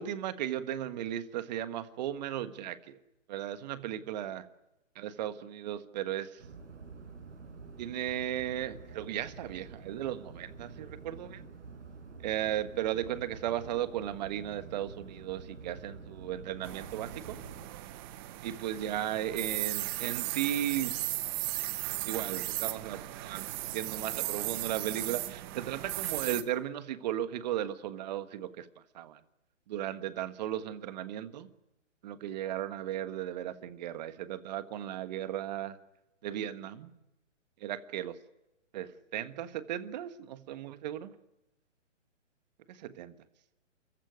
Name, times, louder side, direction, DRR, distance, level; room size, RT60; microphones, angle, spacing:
voice 1, 0.0-3.0 3.3-4.4 4.9-6.4 7.8-11.4 12.2-17.4 18.4-21.0 22.0-28.7 28.9-29.2 29.7-31.5 32.0-35.8 36.2-36.9 37.6-38.1 38.7-41.1 42.7-43.1, right 11 dB, 35° right, 11 dB, 1.6 m, -36 dB
Ambience street binaural, 6.4-17.7, right 5 dB, 65° right, 6.2 m, -48 dB
sound 1, 16.6-26.4, right 16 dB, 20° right, 0.8 m, -36 dB
28.5 x 15.5 x 9.5 m, 0.95 s
hypercardioid pair, 145°, 38 cm